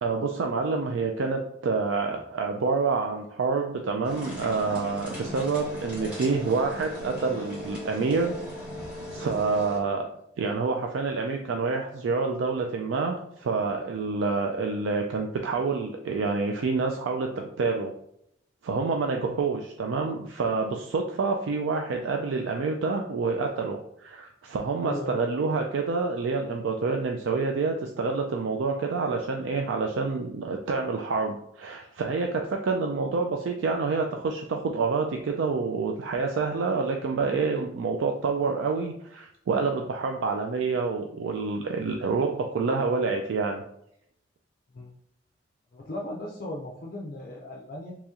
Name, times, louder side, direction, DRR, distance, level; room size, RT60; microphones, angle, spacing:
voice 1, 0.0-8.3 9.1-10.1 10.4-17.9 18.6-43.6, right 4 dB, 80° right, 2 dB, 0.4 m, -27 dB
sound 1, 4.0-9.8, left 1 dB, 5° right, 1.2 m, -38 dB
voice 2, 24.8-25.2 44.7-44.9 45.7-47.9, left 1 dB, 50° left, -2 dB, 0.5 m, -37 dB
3.0 x 2.9 x 3.5 m, 0.74 s
head